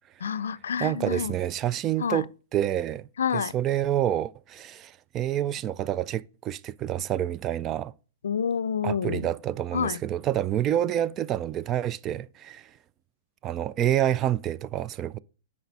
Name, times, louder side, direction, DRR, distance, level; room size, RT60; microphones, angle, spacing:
voice 1, 0.2-1.4 2.0-2.2 3.2-3.5 8.2-9.3 9.7-10.0, left 7 dB, 85° left, 0.4 m, -28 dB
voice 2, 0.8-7.9 8.8-12.7 13.4-15.2, right 11 dB, 30° right, 0.3 m, -28 dB
7.9 x 5.0 x 5.4 m
hypercardioid pair, 130°, 0 cm